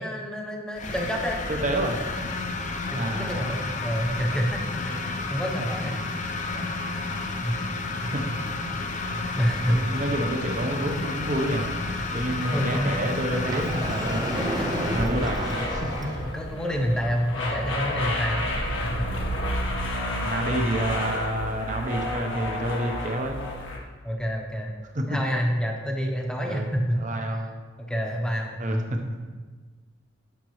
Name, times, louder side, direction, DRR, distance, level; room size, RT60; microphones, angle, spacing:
voice 1, 0.0-1.4 2.9-6.0 7.4-7.6 9.3-9.9 12.5-13.0 16.3-18.5 18.8-19.1 24.0-24.7 25.1-27.0 27.9-28.6, equal, 5° left, 1 dB, 0.9 m, -28 dB
sound 1, 0.8-15.0, left 3 dB, 40° left, 0.7 m, -31 dB
voice 2, 1.5-2.0 2.9-3.4 7.9-8.4 9.0-11.8 12.1-14.2 14.9-16.1 20.2-23.4 24.9-25.2 26.4-27.5 28.6-29.1, right 1 dB, 40° right, 3 dB, 0.9 m, -29 dB
sound 2, 8.5-23.8, left 1 dB, 85° left, 1.4 m, -32 dB
Sliding door, 13.3-16.3, right 1 dB, 20° right, 0.5 m, -31 dB
12.0 x 6.0 x 3.1 m, 1.4 s
head